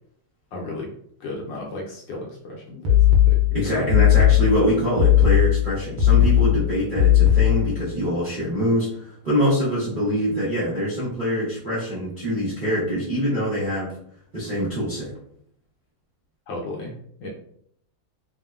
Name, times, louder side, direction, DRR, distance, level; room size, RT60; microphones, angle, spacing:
voice 1, 0.5-0.9 1.2-3.8 16.5-16.9 17.2-17.3, left 2 dB, 75° left, -2 dB, 1.1 m, -34 dB
sound 1, 2.8-7.8, left 11 dB, 80° right, 1.4 m, -17 dB
voice 2, 3.5-13.9 14.3-15.1, equal, 55° right, -10 dB, 0.5 m, -24 dB
3.4 x 2.1 x 2.3 m, 0.67 s
omnidirectional pair, 2.3 m